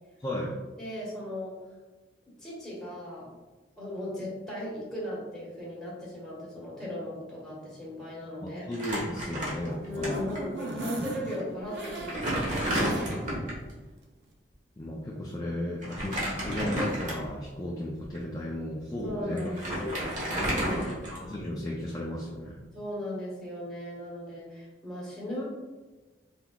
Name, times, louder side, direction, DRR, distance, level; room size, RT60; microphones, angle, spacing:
voice 1, 0.2-0.6 8.4-10.3 14.8-19.5 19.8-20.3 20.7-22.6, left 1 dB, 20° left, -3 dB, 0.4 m, -35 dB
voice 2, 0.8-1.5 2.4-3.3 3.8-8.7 9.8-13.5 19.0-21.0 22.7-25.4, left 1 dB, 5° left, -8 dB, 1.4 m, -38 dB
Crumpling crinkling, 8.7-10.1 10.4-10.5 11.3-11.4 11.8-13.6 15.8-17.4 18.0-18.2 19.1-19.2 19.4-21.5, right 1 dB, 40° right, 1.2 m, -31 dB
sound 1, 9.6-13.4 13.8-13.9 14.2-14.3, right 1 dB, 65° right, 0.6 m, -38 dB
4.5 x 3.7 x 2.3 m, 1.2 s
head